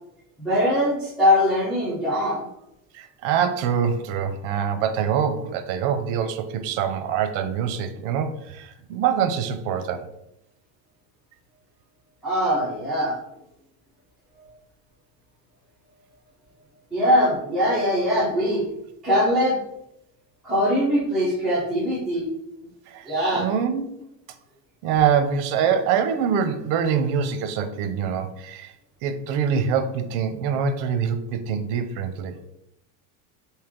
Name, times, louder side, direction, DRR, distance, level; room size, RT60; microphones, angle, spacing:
voice 1, 0.4-2.4 12.2-13.2 16.9-18.6 19.0-19.6 20.4-22.3 23.1-23.5, equal, ahead, -12 dB, 0.9 m, -22 dB
voice 2, 2.9-10.1 22.9-23.9 24.8-28.7 29.0-32.3, right 7 dB, 80° right, 9 dB, 0.6 m, -24 dB
3.2 x 2.7 x 3.6 m, 0.81 s
cardioid pair, 165°, 46 cm